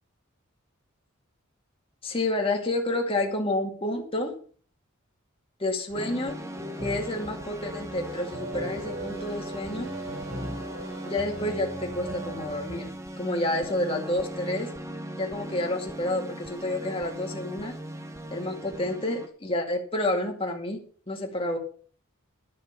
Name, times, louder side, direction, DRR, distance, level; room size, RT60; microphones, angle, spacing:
voice 1, 2.0-4.3 5.6-6.4 6.8-9.9 11.0-12.9 13.2-14.7 15.2-17.7 18.3-20.8 21.1-21.6, left 1 dB, 25° left, 1 dB, 2.2 m, -29 dB
sound 1, 5.9-19.3, right 1 dB, 15° right, 1.2 m, -39 dB
sound 2, 5.9-12.9, right 1 dB, 55° right, 4.0 m, -39 dB
11.5 x 6.5 x 6.9 m, 0.43 s
head